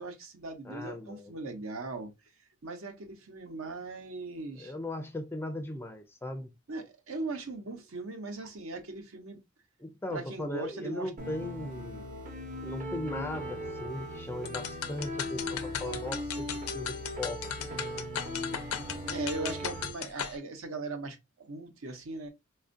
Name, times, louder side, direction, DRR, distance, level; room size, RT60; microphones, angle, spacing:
voice 1, 0.0-2.1 2.6-4.7 6.7-9.4 10.1-11.1 19.1-22.3, right 3 dB, 70° right, 0.8 m, -39 dB
voice 2, 0.6-1.3 4.6-6.5 9.8-12.0 12.6-17.7, left 1 dB, 10° left, 0.4 m, -38 dB
sound 1, 11.2-19.9, equal, 35° right, 0.7 m, -39 dB
sound 2, 14.5-20.4, left 8 dB, 80° left, 0.4 m, -37 dB
4.2 x 2.4 x 2.5 m
head